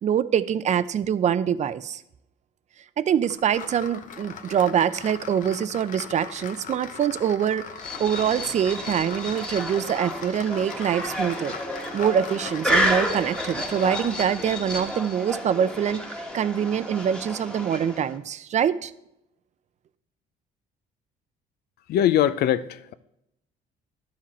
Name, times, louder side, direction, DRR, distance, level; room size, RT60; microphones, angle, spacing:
voice 1, 0.0-2.0 3.0-7.6 8.0-11.5 11.9-16.0 16.3-18.9, right 8 dB, 45° right, 14 dB, 0.6 m, -24 dB
sound 1, 3.2-14.3, left 7 dB, 50° left, 1.0 m, -40 dB
sound 2, 7.8-18.2, equal, 5° left, 1.4 m, -30 dB
voice 2, 21.9-22.9, left 11 dB, 70° left, 15 dB, 0.6 m, -22 dB
12.0 x 7.6 x 4.3 m, 0.82 s
cardioid pair, 110°, 17 cm